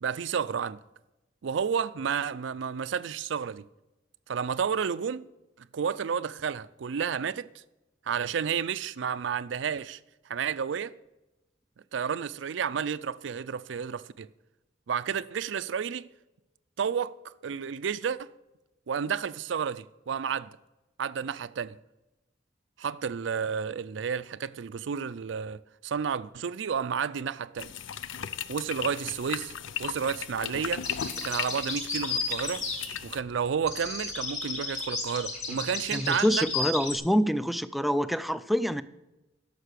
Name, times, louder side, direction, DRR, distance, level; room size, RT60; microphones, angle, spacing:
voice 1, 0.0-0.8 1.4-3.6 4.3-5.2 5.7-7.6 8.1-10.0 10.3-10.9 11.9-14.3 14.9-16.1 16.8-18.3 18.9-20.6 21.0-21.8 22.8-27.7 28.5-29.5 29.8-30.8 31.2-32.6 33.0-36.4, right 7 dB, 70° right, 0.4 m, -31 dB
sound 1, 27.6-33.2, left 8 dB, 85° left, 0.5 m, -37 dB
sound 2, 30.8-33.3 33.6-36.9, left 3 dB, 40° left, 3.2 m, -33 dB
voice 2, 35.9-38.8, equal, ahead, 0.3 m, -26 dB
11.0 x 6.6 x 6.7 m
head